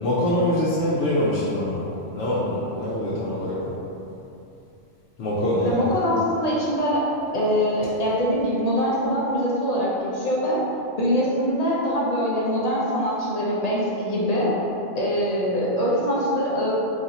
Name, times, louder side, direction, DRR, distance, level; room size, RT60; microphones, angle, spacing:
voice 1, 0.0-1.8 2.1-3.7 5.2-5.9, left 1 dB, 75° left, -8 dB, 1.0 m, -24 dB
voice 2, 5.6-7.0 7.3-10.6 11.0-14.5 14.9-16.7, equal, 45° left, -6 dB, 0.6 m, -23 dB
3.2 x 2.7 x 3.9 m, 2.7 s
omnidirectional pair, 1.3 m